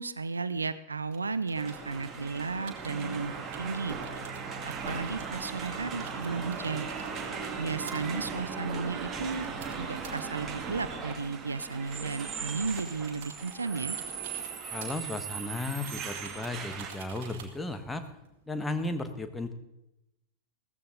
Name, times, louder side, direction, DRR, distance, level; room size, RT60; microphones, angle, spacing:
voice 1, 0.0-4.0 4.7-6.9 7.6-9.5 9.7-14.0, right 4 dB, 75° right, 15 dB, 0.6 m, -34 dB
sound 1, 1.1-18.6, right 7 dB, 50° right, 2.1 m, -52 dB
sound 2, 1.6-16.9, right 5 dB, 25° right, 1.9 m, -38 dB
voice 2, 14.7-18.0 18.5-19.5, left 2 dB, 10° left, 7 dB, 1.3 m, -35 dB
15.5 x 14.0 x 3.8 m, 0.88 s
figure-of-eight pair, 90°, 0 cm